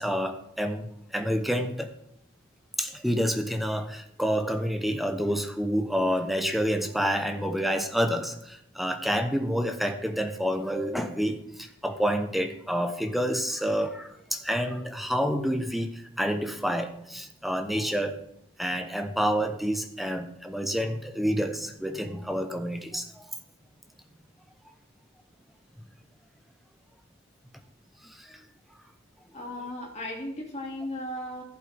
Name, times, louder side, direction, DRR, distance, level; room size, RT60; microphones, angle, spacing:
voice 1, 0.0-1.9 2.8-18.2 18.6-23.3 28.0-28.4, equal, ahead, 6 dB, 0.7 m, -28 dB
voice 2, 29.3-31.4, left 1 dB, 35° left, -1 dB, 2.2 m, -36 dB
15.0 x 8.3 x 3.4 m, 0.77 s
head